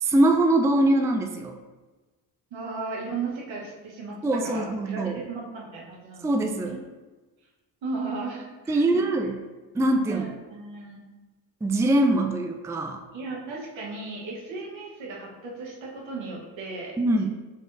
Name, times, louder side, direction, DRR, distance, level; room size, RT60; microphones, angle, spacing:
voice 1, 0.0-1.6 4.2-5.2 6.2-6.8 8.7-9.3 9.7-10.3 11.6-13.0 17.0-17.3, right 1 dB, 5° right, 5 dB, 0.4 m, -23 dB
voice 2, 2.5-4.2 4.4-6.3 6.7-6.8 7.8-9.0 10.1-11.0 13.1-17.0 17.2-17.3, right 3 dB, 75° right, -3 dB, 1.2 m, -35 dB
5.3 x 3.6 x 2.6 m, 1.2 s
supercardioid pair, 55°, 46 cm